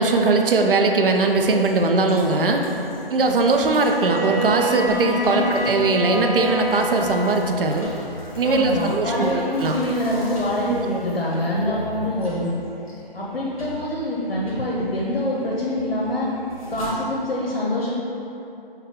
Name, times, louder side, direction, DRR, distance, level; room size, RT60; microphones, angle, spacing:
voice 1, 0.0-2.6 3.1-7.9 8.4-9.8 10.7-11.0 11.6-11.8, right 3 dB, 65° right, 3 dB, 0.5 m, -20 dB
sound 1, 1.0-16.9, left 1 dB, 35° left, 1.1 m, -40 dB
Bowed string instrument, 3.8-7.5, right 1 dB, 5° left, 0.6 m, -27 dB
voice 2, 5.3-5.7 8.4-12.5 13.1-16.3 16.7-17.9, left 1 dB, 85° left, -5 dB, 0.8 m, -25 dB
5.6 x 2.2 x 3.6 m, 3.0 s
figure-of-eight pair, 160°, 30 cm